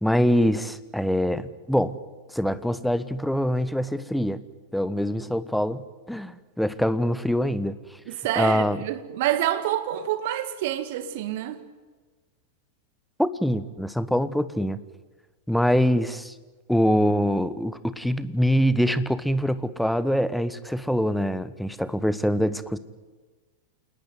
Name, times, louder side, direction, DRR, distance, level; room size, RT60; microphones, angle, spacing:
voice 1, 0.0-2.0 2.3-4.4 4.7-8.0 8.4-8.8 13.2-14.8 15.5-16.3 16.7-22.8, equal, ahead, 1.2 m, -24 dB
voice 2, 8.1-11.6, right 12 dB, 50° right, 2.1 m, -27 dB
28.5 x 19.5 x 9.4 m
figure-of-eight pair, 90°, 0 cm